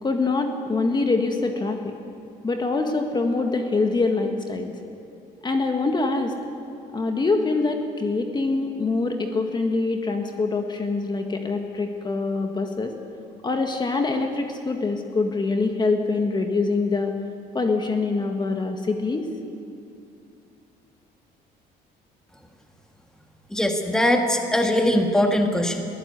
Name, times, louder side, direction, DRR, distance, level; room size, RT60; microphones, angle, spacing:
voice 1, 0.0-1.9 2.4-4.7 5.4-6.3 6.9-12.9 13.4-17.1 17.5-19.3, left 3 dB, 25° left, 4 dB, 1.8 m, -24 dB
voice 2, 23.5-25.9, left 1 dB, 5° left, 3 dB, 1.9 m, -21 dB
21.5 x 15.5 x 8.3 m, 2.6 s
cardioid pair, 110°, 17 cm